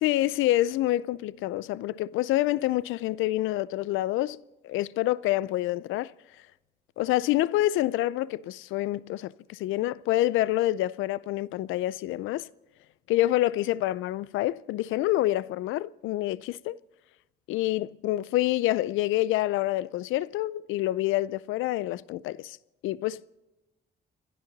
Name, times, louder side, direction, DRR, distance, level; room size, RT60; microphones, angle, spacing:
voice 1, 0.0-4.4 4.6-6.1 7.0-12.5 13.1-16.8 17.5-22.6 22.8-23.2, left 15 dB, 90° left, 0.4 m, -27 dB
29.0 x 12.0 x 4.0 m
cardioid pair, 90°, 20 cm